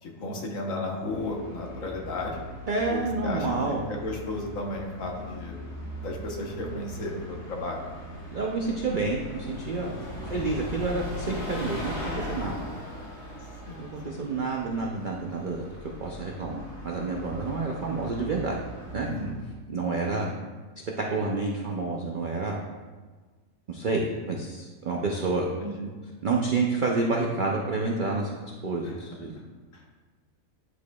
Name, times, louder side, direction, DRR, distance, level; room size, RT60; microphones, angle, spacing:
voice 1, 0.0-2.4 2.9-5.6 6.0-7.9 10.1-10.4 13.7-14.2 19.0-19.3 20.2-20.3 25.6-25.8 28.8-28.9 29.7-29.8, left 2 dB, 60° left, 0 dB, 1.3 m, -34 dB
Bus, 0.9-19.5, left 1 dB, 80° left, 2.0 m, -40 dB
voice 2, 2.7-3.8 8.3-9.9 10.3-12.6 13.8-15.7 16.0-18.6 18.9-19.1 19.7-20.3 21.0-22.6 23.7-25.5 26.2-28.3 28.6-29.4, right 3 dB, 90° right, -1 dB, 0.4 m, -29 dB
9.9 x 4.8 x 2.3 m, 1.4 s
omnidirectional pair, 1.6 m